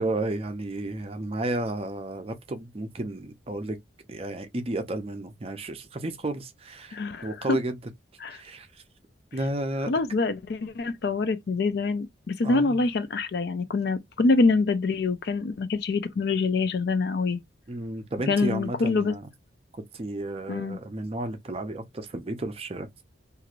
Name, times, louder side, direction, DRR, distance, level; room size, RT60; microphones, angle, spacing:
voice 1, 0.0-3.8 4.1-7.8 8.3-8.8 9.3-9.9 12.4-12.9 17.7-19.3 19.7-22.9, right 2 dB, 30° right, 0.5 m, -32 dB
voice 2, 6.9-7.6 8.2-8.4 9.9-17.4 18.3-19.1 20.5-20.8, left 3 dB, 55° left, 0.4 m, -25 dB
3.0 x 2.5 x 2.4 m
head